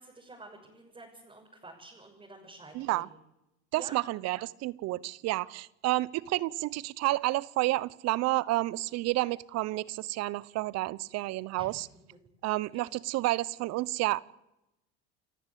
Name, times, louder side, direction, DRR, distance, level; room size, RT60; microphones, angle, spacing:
voice 1, 0.0-3.2 3.7-4.0 11.6-11.7 12.1-12.2 12.7-12.8, right 2 dB, 20° right, 6.6 m, -50 dB
voice 2, 2.7-3.1 3.7-11.9 12.4-14.2, right 18 dB, 55° right, 0.9 m, -30 dB
29.5 x 14.5 x 8.4 m
hypercardioid pair, 80°, 30 cm